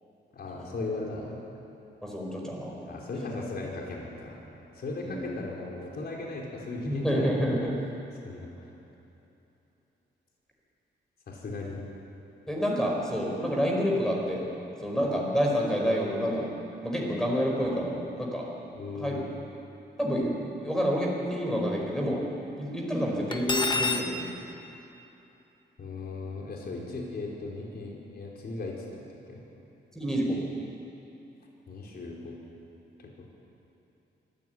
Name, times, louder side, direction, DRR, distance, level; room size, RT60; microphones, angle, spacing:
voice 1, 0.3-1.4 2.9-4.4 4.7-7.6 8.2-8.7 11.3-11.8 18.7-19.3 25.8-29.4 31.7-32.4 33.0-33.3, left 2 dB, 55° left, -2 dB, 4.6 m, -37 dB
voice 2, 2.0-2.9 5.0-5.3 6.8-7.7 12.5-14.4 14.8-16.5 16.8-18.5 19.0-19.2 20.0-20.3 20.6-22.2 22.6-24.3 29.9-30.4, equal, 5° left, -2 dB, 4.9 m, -28 dB
Cutlery silverware, 23.3-24.1, left 3 dB, 25° left, 1.5 m, -27 dB
24.0 x 15.5 x 9.4 m, 2.9 s
wide cardioid pair, 125°, 19 cm